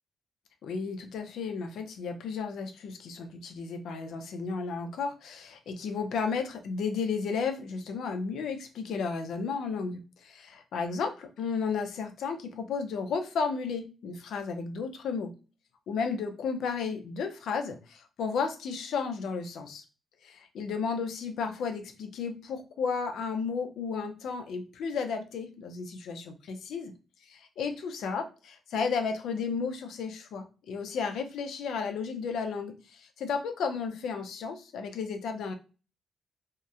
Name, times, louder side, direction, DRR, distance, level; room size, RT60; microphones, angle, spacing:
voice 1, 0.6-15.3 15.9-19.8 20.2-26.9 27.3-35.5, left 5 dB, 85° left, 6 dB, 0.5 m, -33 dB
2.8 x 2.1 x 2.3 m, 0.33 s
wide cardioid pair, 155°, 0 cm